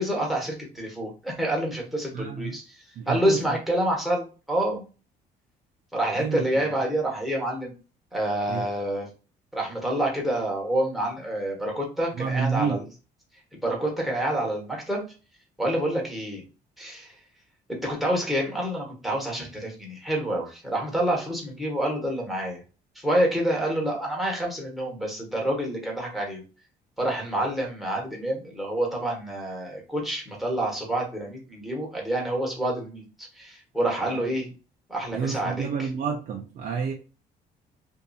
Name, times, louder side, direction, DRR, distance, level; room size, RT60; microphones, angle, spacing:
voice 1, 0.0-2.6 3.1-4.8 5.9-7.7 8.1-9.1 9.5-12.8 13.6-15.0 15.6-16.4 16.8-17.1 17.7-22.6 22.9-26.4 27.0-34.5 34.9-35.7, right 1 dB, ahead, 1.1 m, -27 dB
voice 2, 2.1-2.6 3.0-3.6 6.1-6.7 8.5-8.7 12.1-12.8 34.0-34.3 35.1-36.9, right 6 dB, 50° right, 0.5 m, -29 dB
2.6 x 2.5 x 2.3 m
cardioid pair, 110°, 17 cm